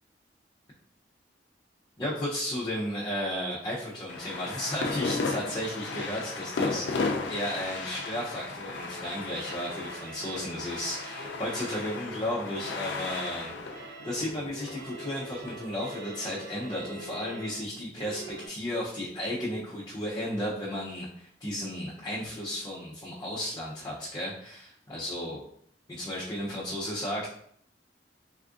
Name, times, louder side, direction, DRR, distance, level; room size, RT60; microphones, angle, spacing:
voice 1, 2.0-13.6 13.9-25.4 25.9-27.3, equal, 25° left, -8 dB, 0.6 m, -34 dB
sound 1, 4.1-15.6, left 3 dB, 85° left, 0.4 m, -35 dB
sound 2, 8.8-18.5, right 1 dB, 80° right, 0.6 m, -45 dB
3.4 x 2.4 x 2.4 m, 0.68 s
head